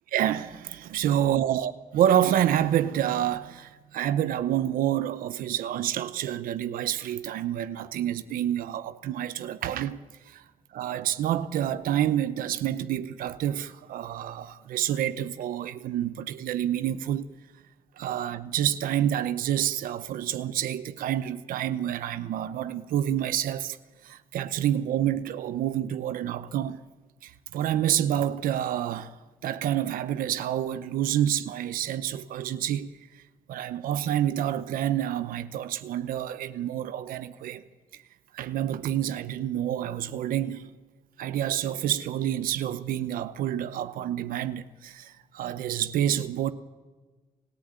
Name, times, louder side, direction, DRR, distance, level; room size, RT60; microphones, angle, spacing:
voice 1, 0.1-10.4 10.7-17.4 18.0-23.8 24.0-26.9 27.2-29.2 29.4-33.0 33.5-37.6 37.9-38.0 38.3-40.8 41.2-46.5, right 11 dB, 90° right, 0.9 m, -28 dB
29.0 x 14.5 x 9.0 m
cardioid pair, 65°, 14 cm